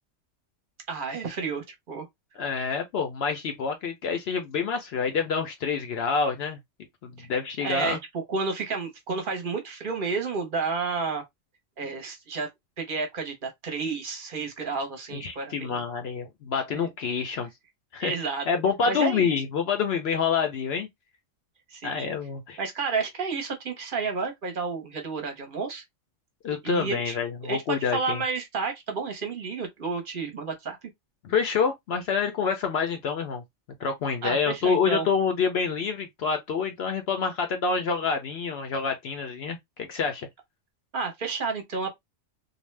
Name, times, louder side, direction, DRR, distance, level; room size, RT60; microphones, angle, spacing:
voice 1, 0.9-2.1 7.2-7.3 7.6-11.2 11.8-12.5 12.8-15.8 16.7-16.9 18.0-18.4 18.9-19.3 21.7-22.1 22.6-25.8 26.6-27.2 27.4-30.8 34.2-35.1 40.9-41.9, right 4 dB, 50° right, 0.8 m, -31 dB
voice 2, 2.4-6.6 7.0-8.0 15.1-17.5 17.9-18.1 18.5-20.9 21.8-22.6 26.4-28.2 31.2-33.4 33.8-40.3, left 6 dB, 65° left, 0.7 m, -27 dB
2.6 x 2.1 x 3.2 m
omnidirectional pair, 1.3 m